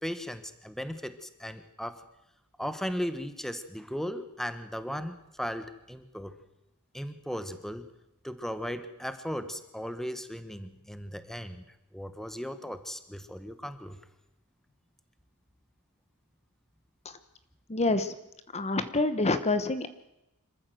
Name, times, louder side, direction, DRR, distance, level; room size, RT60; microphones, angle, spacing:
voice 1, 0.0-2.0 2.6-6.4 6.9-7.9 8.2-11.6 11.9-14.0, equal, ahead, 10 dB, 1.2 m, -37 dB
voice 2, 17.7-18.1 18.5-19.9, left 2 dB, 30° left, 11 dB, 1.1 m, -27 dB
26.0 x 14.0 x 7.9 m, 0.90 s
head